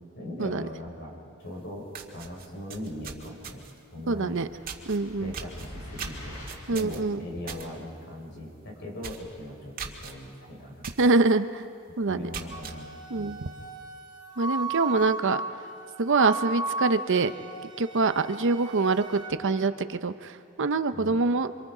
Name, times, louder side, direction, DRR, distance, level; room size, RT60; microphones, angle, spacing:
voice 1, 0.1-1.9 2.1-3.6 3.9-4.4 5.2-6.4 6.7-10.9 12.1-12.9 13.1-13.5 20.9-21.2, left 1 dB, 55° left, 0 dB, 5.3 m, -40 dB
sound 1, 1.5-1.6 1.9-3.8 4.7-5.0 5.3-7.7 8.0-8.3 8.6-8.7 9.0-9.3 9.8-10.1 10.8-11.1 11.5-11.6 12.1-12.8, right 6 dB, 40° right, 1.9 m, -39 dB
voice 2, 4.1-4.5 4.9-5.3 6.7-7.3 11.0-11.6 12.0-12.3 13.1-13.4 14.4-15.4 16.0-17.3 17.8-21.5, right 3 dB, 60° right, 10 dB, 0.7 m, -25 dB
sound 2, 4.3-6.9, left 1 dB, 75° left, 7.3 m, -44 dB
Wind instrument woodwind instrument, 12.5-19.3, right 2 dB, 25° right, 2.2 m, -36 dB
27.0 x 25.5 x 5.0 m, 2.3 s
head